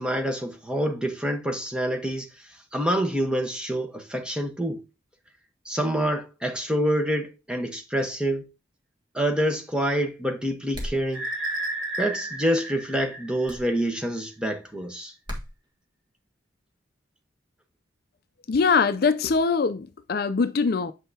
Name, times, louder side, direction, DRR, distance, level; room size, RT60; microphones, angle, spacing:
voice 1, 0.0-4.8 5.6-8.4 9.1-11.3 12.0-15.1, equal, 5° right, 1.1 m, -27 dB
sound 1, 10.7-11.1 13.5-13.7 15.3-15.5, equal, 25° right, 1.5 m, -34 dB
sound 2, 11.1-14.0, right 2 dB, 85° right, 3.2 m, -33 dB
voice 2, 18.5-20.9, left 5 dB, 55° left, 0.5 m, -22 dB
8.0 x 5.6 x 2.8 m
head